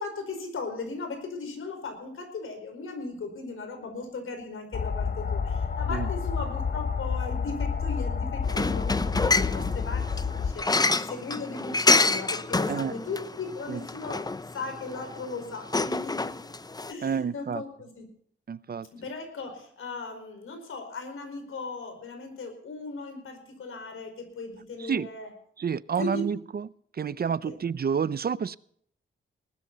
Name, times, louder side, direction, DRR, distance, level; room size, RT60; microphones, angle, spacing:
voice 1, 0.0-16.3 16.9-18.1 18.9-25.3 26.0-26.2 27.4-27.6, left 3 dB, 85° left, 4.9 m, -37 dB
sound 1, 4.7-10.5, left 5 dB, 50° left, 1.2 m, -29 dB
sound 2, 8.4-16.9, left 3 dB, 20° left, 0.7 m, -28 dB
voice 2, 17.0-17.6 18.5-18.9 24.8-25.1 25.6-26.7 26.9-28.6, right 7 dB, 50° right, 0.6 m, -29 dB
19.0 x 13.0 x 4.1 m
cardioid pair, 90°, 21 cm